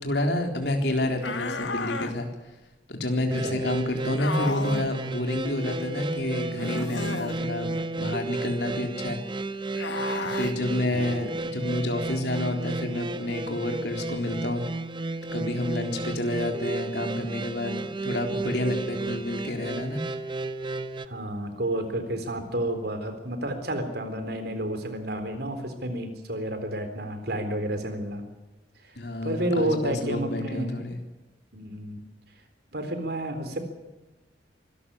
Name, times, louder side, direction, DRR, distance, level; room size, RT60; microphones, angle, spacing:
voice 1, 0.0-2.3 2.9-7.7 8.0-9.2 10.2-14.6 15.3-20.0 29.0-31.0, left 1 dB, 65° left, 3 dB, 3.9 m, -29 dB
sound 1, 1.2-2.1 4.2-4.9 6.5-7.4 9.7-10.5, left 3 dB, 90° left, 1.7 m, -32 dB
sound 2, 3.3-21.0, right 3 dB, 25° right, 0.9 m, -33 dB
voice 2, 10.9-11.3 21.1-28.2 28.8-29.0 29.2-30.7 31.5-32.0 32.7-33.6, right 1 dB, 60° right, 8 dB, 3.8 m, -30 dB
24.5 x 13.5 x 9.8 m, 1.1 s
head